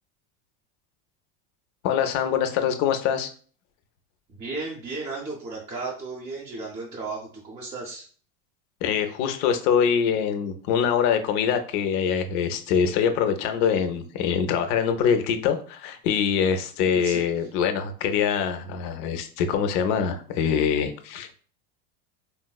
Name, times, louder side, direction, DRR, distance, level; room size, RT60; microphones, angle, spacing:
voice 1, 1.8-3.3 8.8-21.3, left 7 dB, 50° left, 7 dB, 0.4 m, -24 dB
voice 2, 4.3-8.1 16.9-17.2, right 3 dB, 20° right, -4 dB, 0.5 m, -34 dB
4.1 x 2.0 x 2.2 m, 0.44 s
supercardioid pair, 145°, 35 cm